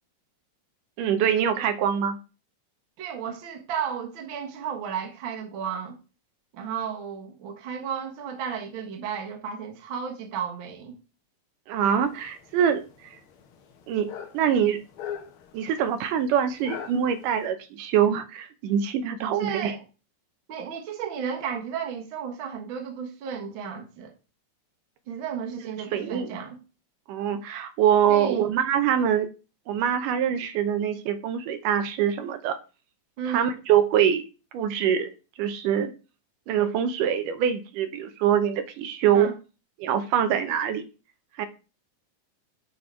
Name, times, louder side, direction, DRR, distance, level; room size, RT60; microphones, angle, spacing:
voice 1, 1.0-2.2 11.7-12.8 13.9-14.8 15.5-19.7 25.9-26.3 27.1-29.3 29.7-32.5 33.3-34.2 34.5-35.1 35.4-35.9 36.5-39.3 39.8-40.8 41.4-41.5, right 9 dB, 80° right, 2.3 m, -24 dB
voice 2, 3.0-6.0 6.5-11.0 19.4-19.8 20.5-24.1 25.1-26.6 28.1-28.5 33.2-33.5 39.1-39.3, right 7 dB, 50° right, 1.7 m, -33 dB
sound 1, 12.0-17.5, left 8 dB, 75° left, 1.2 m, -42 dB
9.5 x 4.0 x 4.4 m
omnidirectional pair, 3.7 m